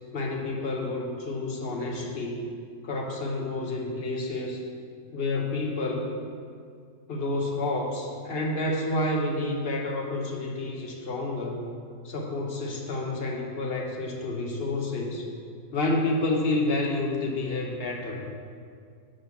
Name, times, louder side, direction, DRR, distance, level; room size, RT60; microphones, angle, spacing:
voice 1, 0.1-2.5 2.8-4.6 5.1-6.1 7.1-11.6 12.0-15.3 15.7-18.2, left 2 dB, 45° left, 0 dB, 1.0 m, -29 dB
6.5 x 5.4 x 5.8 m, 2.2 s
omnidirectional pair, 1.6 m